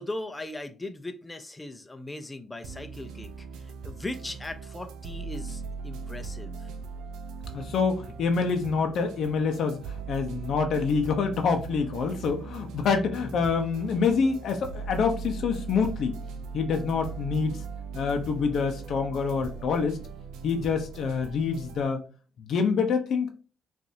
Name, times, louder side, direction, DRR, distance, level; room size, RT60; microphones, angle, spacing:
voice 1, 0.0-3.5 3.8-6.6, left 2 dB, 15° left, 8 dB, 0.6 m, -38 dB
sound 1, 2.6-21.8, right 5 dB, 90° right, 0.5 m, -39 dB
voice 2, 7.5-16.2 16.5-17.6 17.9-20.0 20.4-22.0 22.4-23.3, left 5 dB, 70° left, 5 dB, 0.7 m, -26 dB
5.5 x 2.7 x 2.7 m, 0.36 s
cardioid pair, 90°, 0 cm